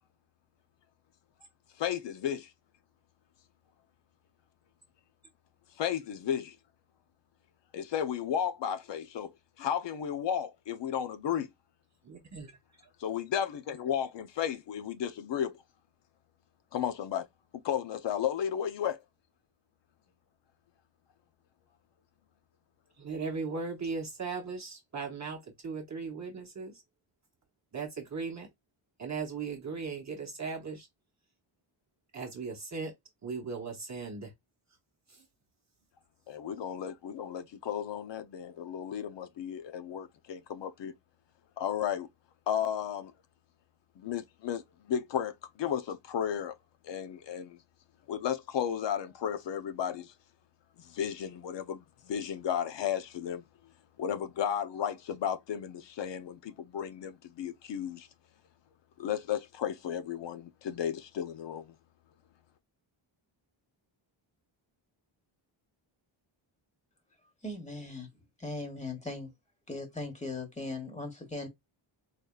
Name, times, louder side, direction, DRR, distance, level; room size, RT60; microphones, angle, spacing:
voice 1, 1.8-2.5 5.8-6.6 7.7-9.3 9.6-11.5 13.0-15.6 16.7-17.3 17.6-19.0 36.3-40.9 41.6-42.1 42.5-43.1 44.0-46.5 46.8-47.6 48.1-50.1 50.8-53.4 54.0-58.1 59.0-61.7, left 9 dB, 60° left, 0.6 m, -34 dB
voice 2, 12.0-12.5 23.0-26.8 27.7-28.5 29.0-30.9 32.1-32.9 33.2-34.3 35.1-35.2, right 4 dB, 35° right, 0.9 m, -38 dB
voice 3, 67.4-68.1 68.4-69.3 69.7-71.5, left 2 dB, 15° left, 1.2 m, -38 dB
3.9 x 3.2 x 2.3 m
wide cardioid pair, 140°, 49 cm